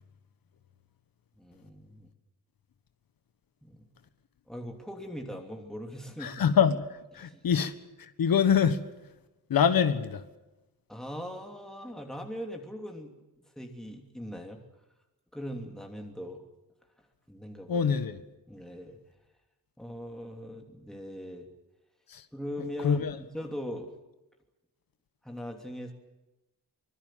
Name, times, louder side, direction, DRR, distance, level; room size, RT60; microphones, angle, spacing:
voice 1, 1.4-2.1 3.6-3.9 4.5-6.4 7.2-7.4 10.9-13.1 13.6-14.6 15.3-16.4 17.3-17.9 18.5-19.0 19.8-21.5 22.3-23.9 25.2-25.9, equal, ahead, 2.9 m, -40 dB
voice 2, 6.2-6.9 7.1-7.7 8.0-8.8 9.5-10.2 17.7-18.2 22.1-22.2 22.8-23.2, left 7 dB, 75° left, 1.6 m, -25 dB
25.0 x 21.5 x 7.6 m
wide cardioid pair, 125°, 35 cm